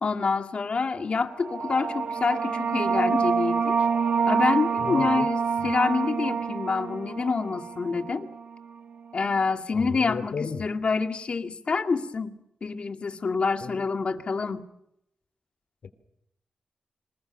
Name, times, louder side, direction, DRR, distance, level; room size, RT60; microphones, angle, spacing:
voice 1, 0.0-3.8 4.3-8.3 9.1-14.7, left 4 dB, 45° left, 6 dB, 2.1 m, -27 dB
sound 1, 1.3-8.5, right 6 dB, 65° right, 1.1 m, -27 dB
voice 2, 4.8-5.3 5.6-5.7 9.7-10.6 13.6-13.9 15.8-15.9, left 5 dB, 70° left, 12 dB, 3.1 m, -34 dB
26.5 x 20.5 x 6.9 m, 0.79 s
wide cardioid pair, 120°, 3 cm